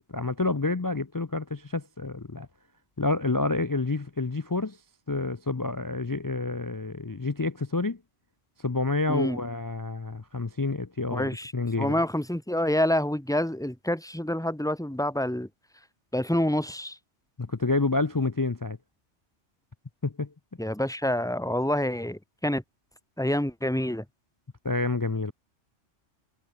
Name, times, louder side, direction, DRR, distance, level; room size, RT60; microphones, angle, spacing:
voice 1, 0.0-2.5 3.0-4.8 5.1-8.0 8.6-12.0 17.4-18.8 20.0-20.3 24.6-25.3, left 3 dB, 30° left, 0.4 m, -28 dB
voice 2, 9.1-9.4 11.1-11.5 11.8-15.5 16.1-17.0 20.6-22.6 23.2-24.0, left 1 dB, 5° left, 2.2 m, -27 dB
omnidirectional pair, 1.2 m